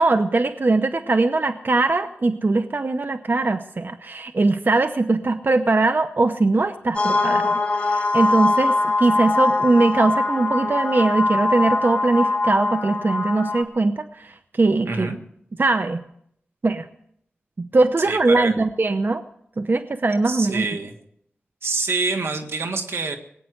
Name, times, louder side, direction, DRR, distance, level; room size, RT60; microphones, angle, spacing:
voice 1, 0.0-15.1 15.6-16.0 16.6-16.9 17.6-19.2 19.6-20.7, right 3 dB, 55° right, 10 dB, 0.7 m, -21 dB
sound 1, 6.9-13.6, left 3 dB, 35° left, 3.1 m, -22 dB
voice 2, 14.8-15.2 18.0-18.5 20.2-20.9 21.6-23.2, right 3 dB, 85° right, 6 dB, 1.6 m, -26 dB
19.0 x 9.2 x 7.8 m, 0.70 s
cardioid pair, 45°, 4 cm